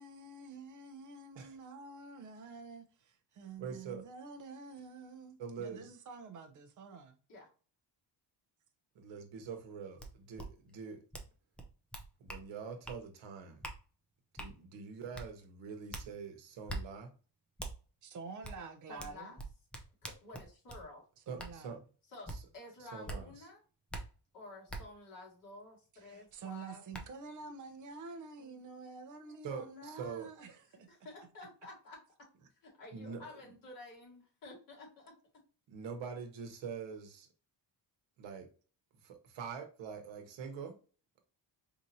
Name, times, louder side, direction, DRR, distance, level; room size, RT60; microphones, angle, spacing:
voice 1, 0.0-7.2 18.0-19.3 21.3-21.8 26.0-30.9, right 4 dB, 45° right, 0.7 m, -48 dB
voice 2, 3.6-4.1 5.4-5.9 8.9-11.0 12.2-13.6 14.3-17.1 21.3-21.8 22.9-23.3 29.4-30.3 32.9-33.3 35.7-37.3 38.2-38.5 39.0-40.8, right 6 dB, 80° right, 1.1 m, -44 dB
sound 1, 10.0-10.1 10.4-10.5 11.1-11.3 11.6-12.4 12.8-13.0 13.6-13.8 14.4-14.5 15.1-15.3 15.9-16.1 16.7-16.8 17.6-17.7 18.4-18.6 19.0-20.8 21.4-21.5 22.3-22.4 23.1-23.2 23.9-24.0 24.7-24.8 26.3-26.4 26.9-27.0, right 1 dB, 5° left, 0.4 m, -42 dB
voice 3, 18.9-19.4 20.0-21.0 22.1-23.6 24.3-27.1 28.4-28.6 29.1-30.3 30.7-35.4, left 2 dB, 50° left, 2.2 m, -52 dB
4.7 x 2.8 x 2.7 m
cardioid pair, 155°, 44 cm